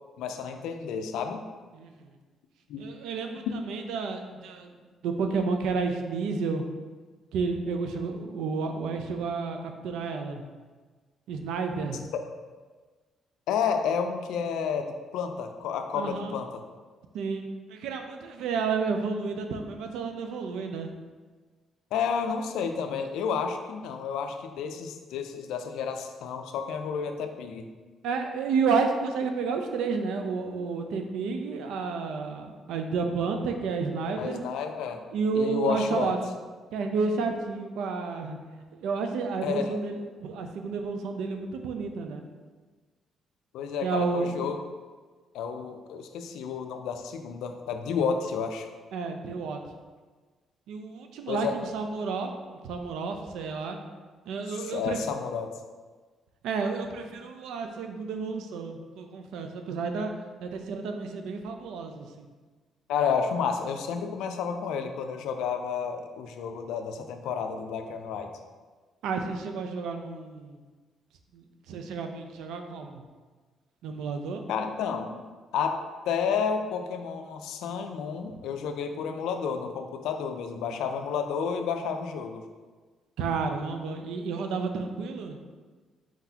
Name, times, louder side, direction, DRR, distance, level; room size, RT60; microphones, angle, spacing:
voice 1, 0.2-1.4 2.7-2.9 3.5-3.6 13.5-16.6 21.9-27.7 34.2-35.0 35.3-36.2 39.4-39.7 43.5-44.6 45.3-48.7 51.3-51.6 54.6-55.5 62.9-68.3 74.5-75.2 75.5-82.4, left 6 dB, 90° left, 6 dB, 0.4 m, -31 dB
voice 2, 1.7-2.1 2.8-4.8 5.0-6.7 7.3-10.4 11.3-12.1 15.9-16.4 17.1-20.9 28.0-34.4 35.1-36.2 36.7-38.4 38.7-42.3 43.8-44.5 48.9-49.6 50.7-53.8 54.3-55.0 56.4-60.1 60.4-62.3 69.0-70.6 71.3-73.0 73.8-74.4 78.3-78.4 83.2-85.4, right 4 dB, 90° right, 5 dB, 0.4 m, -31 dB
4.5 x 3.9 x 2.8 m, 1.4 s
cardioid pair, 90°, 0 cm